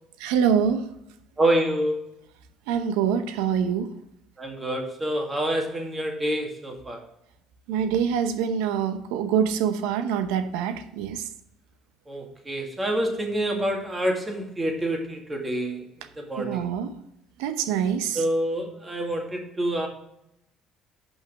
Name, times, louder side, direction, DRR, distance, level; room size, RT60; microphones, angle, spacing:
voice 1, 0.2-0.9 2.7-3.9 7.7-11.2 16.4-16.9 17.4-18.2, right 8 dB, 90° right, 10 dB, 0.8 m, -25 dB
voice 2, 1.4-2.0 4.4-7.0 12.1-15.8 16.2-16.7 18.1-19.9, right 1 dB, 20° right, 2 dB, 2.0 m, -27 dB
5.7 x 5.7 x 7.0 m, 0.79 s
cardioid pair, 100°, 0 cm